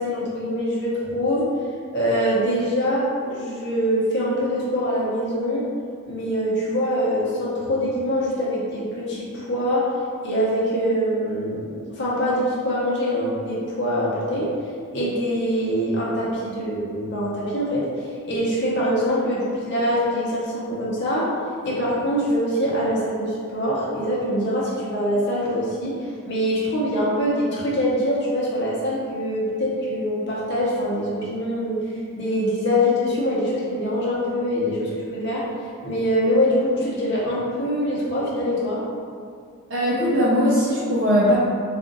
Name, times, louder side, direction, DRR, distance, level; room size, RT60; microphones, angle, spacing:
voice 1, 0.0-1.5 1.9-5.6 6.1-9.9 10.2-14.5 14.9-17.9 18.2-21.3 21.6-31.8 32.1-35.4 35.8-38.8, equal, 55° left, -6 dB, 0.8 m, -24 dB
voice 2, 39.7-41.4, equal, 55° right, -10 dB, 0.6 m, -19 dB
2.4 x 2.4 x 3.9 m, 2.2 s
head